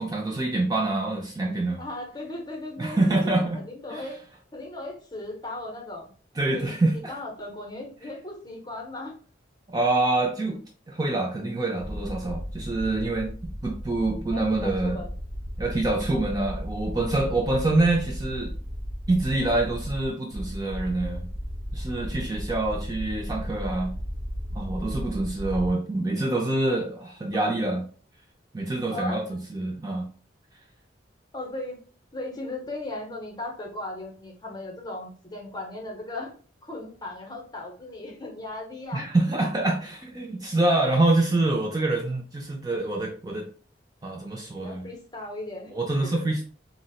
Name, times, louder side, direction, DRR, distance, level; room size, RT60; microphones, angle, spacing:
voice 1, 0.0-1.8 2.8-3.6 3.9-4.1 6.4-7.1 9.7-10.6 10.9-13.3 13.6-15.0 15.6-18.5 19.1-21.3 21.7-23.9 24.5-27.9 28.5-30.1 38.9-43.5 44.0-44.9 45.7-46.4, right 2 dB, 20° right, 1 dB, 0.3 m, -26 dB
voice 2, 1.8-4.2 4.5-6.1 6.5-9.1 14.3-15.1 28.9-29.2 31.3-31.8 32.1-36.3 36.6-39.1 40.7-40.8 44.6-45.8 46.1-46.2, left 2 dB, 20° left, 0 dB, 0.7 m, -37 dB
sound 1, 11.8-25.7, equal, 40° right, 1.1 m, -35 dB
3.9 x 2.1 x 2.3 m, 0.42 s
head